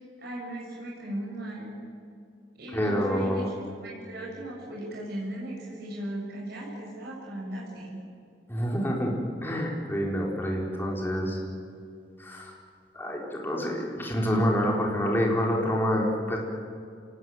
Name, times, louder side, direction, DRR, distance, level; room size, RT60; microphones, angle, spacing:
voice 1, 0.2-1.7 2.6-3.6 3.8-8.0, right 1 dB, 60° right, -4 dB, 7.3 m, -37 dB
voice 2, 2.7-3.5 8.5-9.1 9.4-11.4 12.2-12.5 12.9-16.4, equal, 10° left, -2 dB, 4.4 m, -27 dB
28.0 x 19.0 x 9.4 m, 2.4 s
head